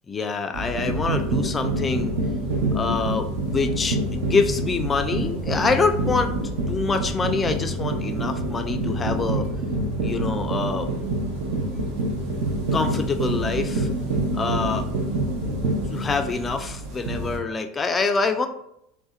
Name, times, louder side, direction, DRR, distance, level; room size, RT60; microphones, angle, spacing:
voice 1, 0.1-2.1 2.7-6.3 6.7-9.5 10.0-10.9 12.7-13.9 14.3-14.9 15.9-18.5, left 4 dB, 25° left, 6 dB, 0.3 m, -25 dB
sound 1, 0.5-17.4, right 1 dB, 70° right, 0.7 m, -26 dB
2.7 x 2.1 x 2.3 m, 0.75 s
hypercardioid pair, 100°, 0 cm